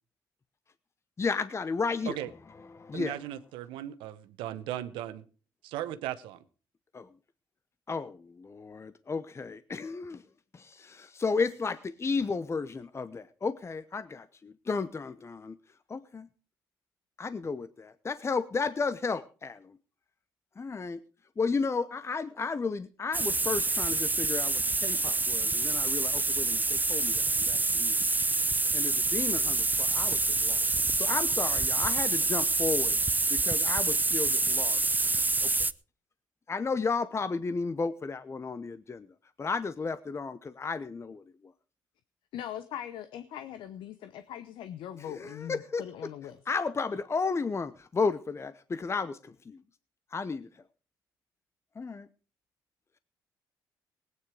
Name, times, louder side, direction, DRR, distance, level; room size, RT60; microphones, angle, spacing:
voice 1, 1.2-2.3 2.6-3.2 6.9-7.1 7.9-10.2 10.5-15.6 15.9-16.3 17.2-19.8 20.6-21.0 21.4-28.0 28.5-30.7 31.0-33.0 33.3-34.8 35.4-35.5 36.5-39.1 39.4-41.5 44.9-45.8 46.5-49.6 50.1-50.6 51.8-52.1, left 4 dB, 35° left, 0.8 m, -33 dB
voice 2, 2.9-5.2 5.6-6.4, right 12 dB, 85° right, 0.9 m, -37 dB
sound 1, 23.1-35.7, right 3 dB, 20° right, 0.7 m, -27 dB
voice 3, 42.3-46.4, left 10 dB, 75° left, 0.9 m, -41 dB
18.5 x 9.4 x 4.8 m
supercardioid pair, 55°, 8 cm